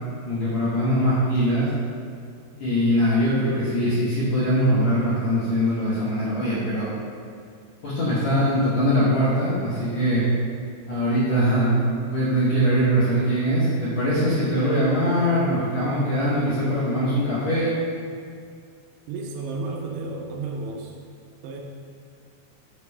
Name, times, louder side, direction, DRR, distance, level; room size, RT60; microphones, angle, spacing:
voice 1, 0.2-1.7 2.6-6.9 7.8-10.2 10.9-11.8 12.1-17.7, equal, 65° left, -10 dB, 1.8 m, -22 dB
voice 2, 19.1-20.9 21.4-21.6, right 3 dB, 80° right, 1 dB, 2.8 m, -32 dB
8.1 x 4.4 x 5.6 m, 2.2 s
omnidirectional pair, 5.0 m